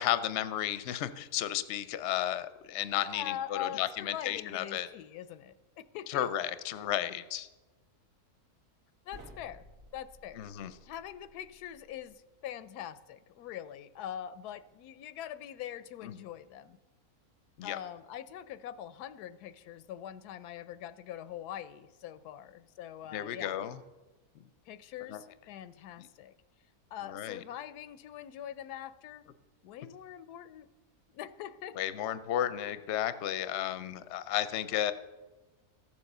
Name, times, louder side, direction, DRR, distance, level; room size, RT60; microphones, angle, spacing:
voice 1, 0.0-4.9 6.1-7.5 10.4-10.7 17.6-17.8 23.1-23.8 25.1-25.2 27.1-27.4 31.8-34.9, left 12 dB, 60° left, 13 dB, 0.8 m, -33 dB
voice 2, 2.9-6.3 9.1-9.6 9.9-16.8 17.6-23.6 24.7-26.3 26.9-29.2 29.6-30.7 31.1-31.8, left 11 dB, 90° left, 15 dB, 1.1 m, -43 dB
sound 1, 9.1-12.2, right 1 dB, 90° right, 2.3 m, -55 dB
14.0 x 7.3 x 6.6 m, 1.2 s
omnidirectional pair, 1.6 m